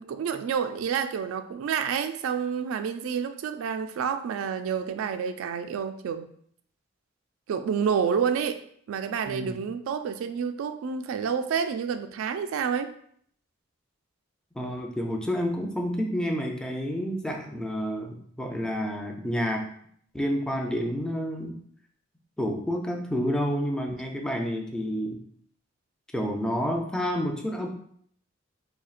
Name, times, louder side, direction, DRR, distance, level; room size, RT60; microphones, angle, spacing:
voice 1, 0.0-6.3 7.5-8.6 8.9-12.9, right 7 dB, 85° right, 9 dB, 0.3 m, -29 dB
voice 2, 14.5-19.7 20.1-21.6 22.4-25.2 26.1-27.7, equal, 5° left, 1 dB, 0.4 m, -29 dB
4.3 x 2.7 x 2.4 m, 0.63 s
head